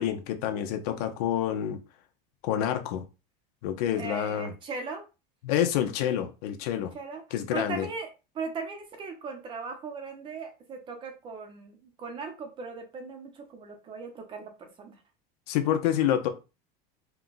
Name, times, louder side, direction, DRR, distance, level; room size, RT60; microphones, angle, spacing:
voice 1, 0.0-1.8 2.4-3.0 3.6-4.5 5.4-6.9 7.3-7.9 15.5-16.3, left 10 dB, 80° left, 0.9 m, -28 dB
voice 2, 3.9-5.0 6.9-8.1 8.3-14.9, right 4 dB, 25° right, 0.7 m, -38 dB
4.6 x 2.3 x 4.0 m
cardioid pair, 170°, 20 cm